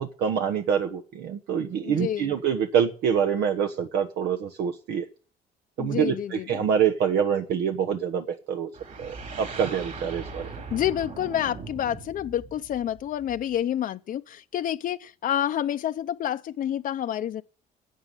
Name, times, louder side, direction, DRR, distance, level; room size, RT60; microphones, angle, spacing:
voice 1, 0.0-5.1 5.8-8.7 9.0-10.5, right 8 dB, 80° right, 1.3 m, -26 dB
voice 2, 1.8-2.3 5.8-6.7 10.7-17.4, left 11 dB, 55° left, 0.7 m, -28 dB
sound 1, 8.7-13.6, right 4 dB, 50° right, 4.8 m, -40 dB
12.0 x 7.8 x 9.9 m
cardioid pair, 110°, 17 cm